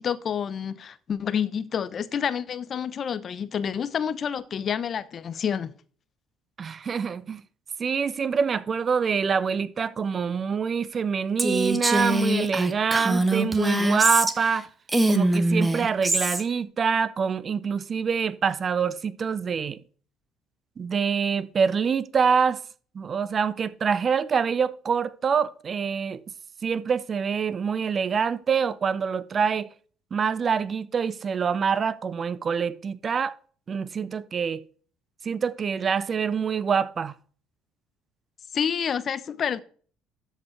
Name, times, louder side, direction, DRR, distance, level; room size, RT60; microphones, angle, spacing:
voice 1, 0.0-5.7 38.5-39.6, left 8 dB, 45° left, 0.9 m, -28 dB
voice 2, 6.6-7.4 7.8-14.7 15.1-19.8 20.8-22.6 22.9-26.2 26.6-29.7 30.1-33.4 33.7-34.6 35.2-37.1, right 6 dB, 40° right, 0.7 m, -25 dB
Female speech woman speaking, 11.4-14.6 14.9-16.4, right 1 dB, 15° right, 1.5 m, -23 dB
13.0 x 5.3 x 4.7 m
hypercardioid pair, 65°, 0 cm